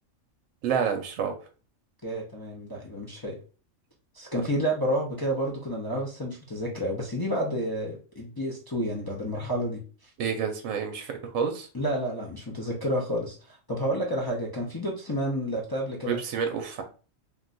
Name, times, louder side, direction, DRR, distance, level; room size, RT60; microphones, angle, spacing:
voice 1, 0.6-1.3 10.2-11.7 16.0-16.8, right 7 dB, 75° right, 4 dB, 0.9 m, -29 dB
voice 2, 2.0-3.4 4.2-9.8 11.7-13.4 13.7-16.2, equal, 35° left, -3 dB, 0.3 m, -30 dB
2.5 x 2.2 x 3.8 m, 0.36 s
omnidirectional pair, 1.3 m